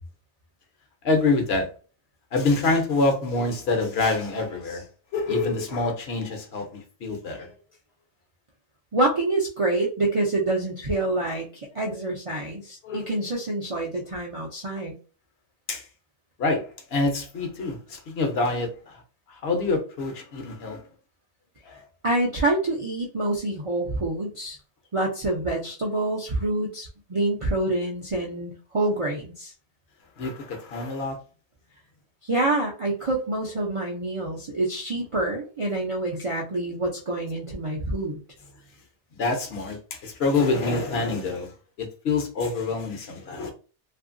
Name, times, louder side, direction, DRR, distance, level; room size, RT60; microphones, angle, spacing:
voice 1, 1.0-1.7 2.3-4.8 5.1-7.5 12.8-13.1 15.7-15.8 16.4-18.9 19.3-20.8 21.7-21.8 30.2-31.2 39.2-41.5 41.8-43.5, left 3 dB, 65° left, 0.9 m, -26 dB
voice 2, 8.9-14.9 22.0-24.6 24.9-29.5 32.2-38.2, right 2 dB, 50° right, 0.4 m, -27 dB
2.7 x 2.5 x 2.5 m
omnidirectional pair, 1.2 m